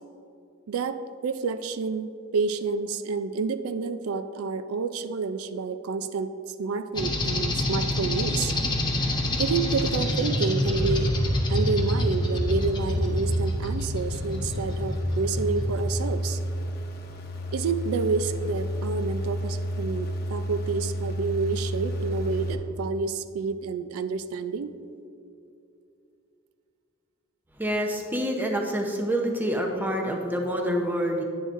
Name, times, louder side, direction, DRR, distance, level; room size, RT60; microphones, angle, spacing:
voice 1, 0.7-1.0 1.2-6.3 6.6-8.6 9.4-11.1 11.5-16.4 17.5-24.7, right 4 dB, 90° right, 11 dB, 0.4 m, -29 dB
sound 1, 7.0-15.7, left 1 dB, 20° left, 0.8 m, -27 dB
sound 2, 8.5-22.5, equal, 45° left, 0.9 m, -32 dB
voice 2, 27.6-31.2, equal, 10° right, 1 dB, 0.7 m, -27 dB
10.0 x 9.4 x 2.5 m, 2.6 s
head